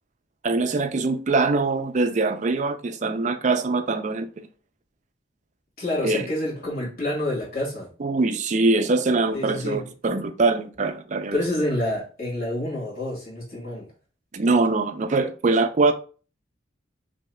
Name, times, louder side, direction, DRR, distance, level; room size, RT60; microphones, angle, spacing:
voice 1, 0.4-4.3 6.0-6.3 8.0-11.4 14.3-15.9, right 3 dB, 40° right, 0.4 m, -23 dB
voice 2, 5.8-7.9 9.3-9.9 11.3-13.9, left 1 dB, 50° left, 2.0 m, -28 dB
5.4 x 2.8 x 2.2 m
head